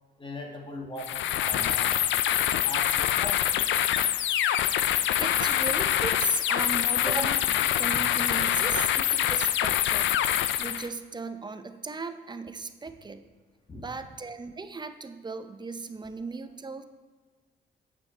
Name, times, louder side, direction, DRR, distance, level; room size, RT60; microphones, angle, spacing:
voice 1, 0.2-2.0 2.6-3.4 7.9-8.0 13.7-13.8, left 2 dB, 25° left, 1 dB, 1.5 m, -39 dB
sound 1, 1.0-10.9, left 11 dB, 70° left, 0.4 m, -25 dB
voice 2, 5.2-13.3 13.7-16.8, right 4 dB, 20° right, 9 dB, 0.6 m, -37 dB
8.6 x 6.0 x 4.4 m, 1.4 s
cardioid pair, 90°, 20 cm